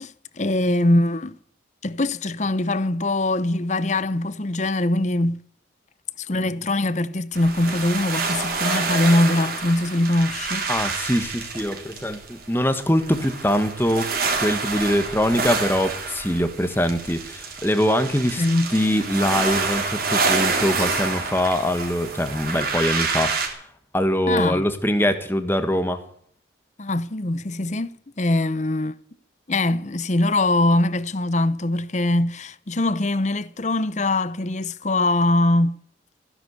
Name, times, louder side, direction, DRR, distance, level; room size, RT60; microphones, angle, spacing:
voice 1, 0.0-1.4 1.8-5.4 6.2-10.7 18.4-18.7 24.3-24.7 26.8-27.9 28.2-28.9 29.5-35.8, left 2 dB, 35° left, 0.8 m, -22 dB
sound 1, 7.3-23.5, right 4 dB, 50° right, 4.0 m, -27 dB
voice 2, 10.7-14.1 14.4-18.4 18.7-23.6 23.9-26.0, equal, 10° left, 1.6 m, -23 dB
16.0 x 10.5 x 8.2 m
head